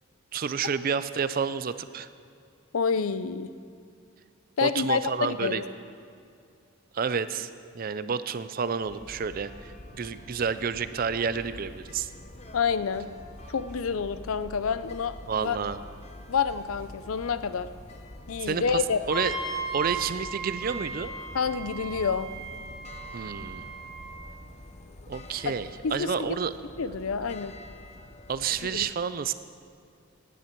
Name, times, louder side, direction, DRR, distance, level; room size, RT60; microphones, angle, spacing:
voice 1, 0.3-2.1 4.6-5.6 6.9-7.5 7.7-12.1 15.2-15.8 18.4-18.8 19.1-19.3 19.7-21.1 23.1-23.6 25.1-26.5 28.3-29.3, right 6 dB, 40° right, 13 dB, 0.4 m, -30 dB
voice 2, 2.7-3.5 4.6-5.6 12.5-13.1 13.5-15.6 16.3-17.7 18.3-19.0 21.3-22.3 25.4-25.5 25.8-26.1 26.8-27.5 28.6-28.9, left 6 dB, 75° left, 13 dB, 0.5 m, -28 dB
sound 1, 8.8-28.8, left 1 dB, 30° left, 0.8 m, -46 dB
Wind instrument woodwind instrument, 19.1-24.1, right 3 dB, ahead, 1.0 m, -36 dB
17.5 x 10.0 x 4.5 m, 2.4 s
head